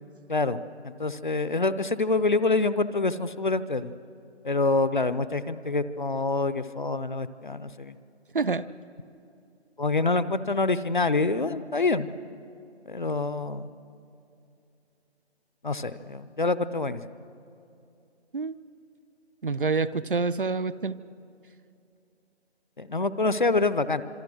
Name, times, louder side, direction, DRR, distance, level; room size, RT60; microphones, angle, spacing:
voice 1, 0.3-3.9 4.4-7.9 9.8-12.1 12.9-13.7 15.6-17.0 22.8-24.0, left 3 dB, 45° left, 14 dB, 0.7 m, -26 dB
voice 2, 19.4-21.0, right 4 dB, 50° right, 15 dB, 0.6 m, -27 dB
26.5 x 22.5 x 6.2 m, 2.7 s
figure-of-eight pair, 180°, 33 cm